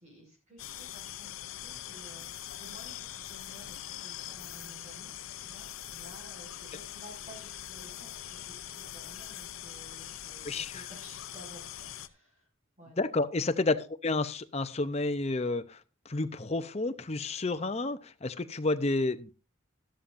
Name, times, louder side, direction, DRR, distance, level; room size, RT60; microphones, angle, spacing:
voice 1, 0.0-5.1 5.4-12.5 12.8-13.1, right 1 dB, 35° right, -1 dB, 5.9 m, -53 dB
sound 1, 0.6-12.1, left 11 dB, 85° left, 0.6 m, -43 dB
voice 2, 10.4-10.8 13.0-15.8 16.1-19.3, left 2 dB, 30° left, 11 dB, 0.7 m, -30 dB
13.0 x 13.0 x 2.6 m, 0.30 s
head